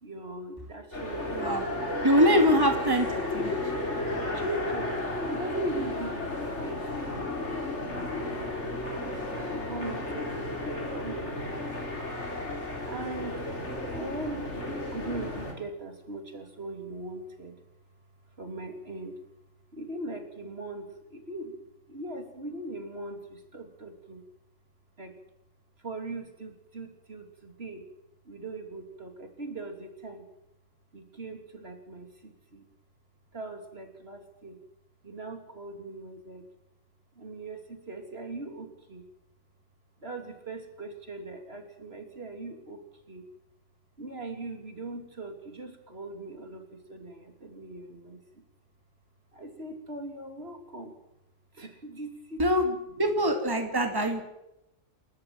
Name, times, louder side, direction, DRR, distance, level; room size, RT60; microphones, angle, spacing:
voice 1, 0.0-2.6 4.3-5.0 5.3-7.3 7.7-8.5 9.0-12.0 12.8-13.4 13.9-17.6 18.4-19.2 19.7-21.6 21.9-24.2 25.0-25.1 25.8-27.9 28.2-30.3 30.9-32.7 33.3-34.6 35.0-36.4 37.1-39.0 40.0-42.8 43.1-43.3 44.0-48.4 49.3-50.9 51.5-52.8 53.7-54.2, right 2 dB, 55° right, 5 dB, 3.1 m, -40 dB
sound 1, 0.9-15.5, left 2 dB, 65° left, 4.1 m, -33 dB
voice 2, 1.3-1.6 2.0-3.1 3.3-3.5 52.4-52.6 53.0-54.2, equal, 20° right, 5 dB, 2.6 m, -23 dB
29.5 x 13.5 x 7.6 m, 0.89 s
omnidirectional pair, 1.3 m